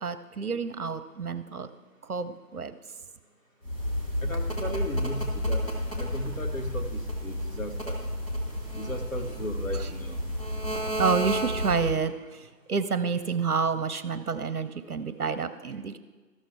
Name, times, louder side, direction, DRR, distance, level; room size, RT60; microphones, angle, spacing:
voice 1, 0.0-1.7 2.0-2.7 9.7-9.9 11.0-16.0, right 5 dB, 65° right, 11 dB, 0.7 m, -29 dB
sound 1, 3.6-12.0, equal, 35° left, 2.1 m, -31 dB
voice 2, 4.2-5.6 6.0-8.0 8.7-10.2, equal, 55° left, 4 dB, 1.1 m, -36 dB
14.0 x 6.4 x 3.3 m, 1.3 s
figure-of-eight pair, 175°, 49 cm